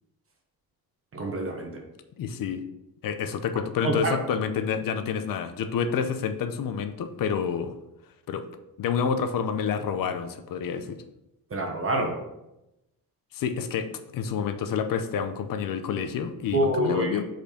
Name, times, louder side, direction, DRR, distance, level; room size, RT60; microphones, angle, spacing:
voice 1, 1.1-1.8 3.8-4.2 11.5-12.2 16.5-17.2, right 1 dB, 35° right, 2 dB, 1.1 m, -26 dB
voice 2, 2.2-2.6 3.0-7.7 8.3-8.5 8.8-11.0 13.3-13.9 14.1-17.3, left 7 dB, 60° left, 9 dB, 0.7 m, -28 dB
5.4 x 4.4 x 5.0 m, 0.92 s
cardioid pair, 145°, 37 cm